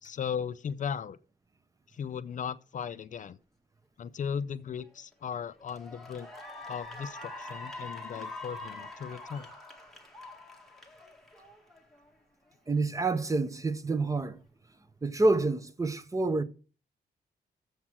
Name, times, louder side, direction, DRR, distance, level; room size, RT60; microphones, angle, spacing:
voice 1, 0.0-1.2 1.9-3.4 4.0-6.3 6.7-9.5, left 7 dB, 45° left, 0.4 m, -37 dB
Cheering / Applause, 4.9-5.1 5.6-12.1, left 2 dB, ahead, 1.7 m, -44 dB
voice 2, 12.7-14.4 15.0-16.4, right 2 dB, 20° right, 0.6 m, -27 dB
7.3 x 5.9 x 7.5 m
wide cardioid pair, 140°, 18 cm